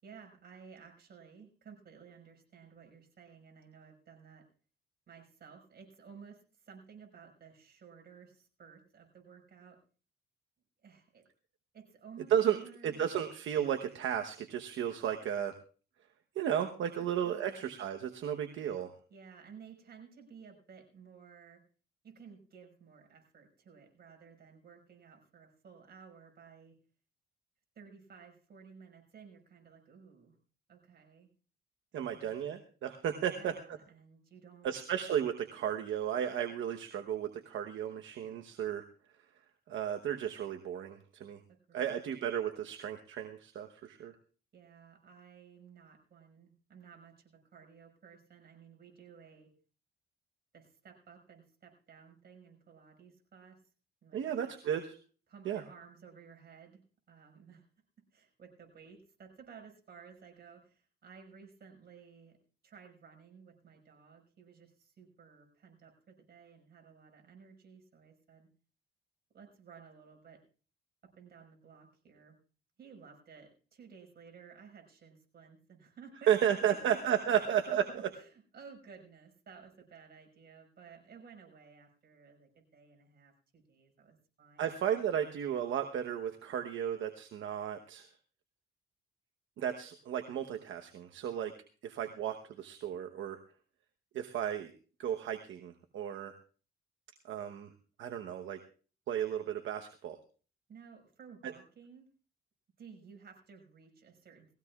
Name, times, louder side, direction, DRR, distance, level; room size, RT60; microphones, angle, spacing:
voice 1, 0.0-4.4 5.1-9.8 10.8-11.2 11.7-13.0 17.2-17.6 19.1-21.6 22.0-26.8 27.8-30.4 30.7-31.3 31.9-32.3 33.2-34.7 41.5-42.0 44.5-49.5 50.5-53.6 54.0-54.2 55.3-56.8 57.1-57.6 58.1-62.4 62.6-68.5 69.3-70.4 71.0-72.4 72.8-76.3 76.6-77.0 77.7-84.8 100.7-102.1 102.8-104.5, right 6 dB, 50° right, 2 dB, 5.5 m, -55 dB
voice 2, 12.8-15.5 16.3-18.9 31.9-33.5 34.6-38.8 39.7-41.4 41.7-44.1 54.1-55.0 55.4-55.6 76.3-77.8 84.6-88.1 89.6-91.5 91.8-93.4 94.1-94.7 95.0-96.4 97.3-97.7 98.0-98.6 99.1-100.2 101.4-101.5, right 9 dB, 75° right, 5 dB, 1.1 m, -33 dB
20.0 x 16.5 x 2.4 m, 0.38 s
cardioid pair, 90°, 20 cm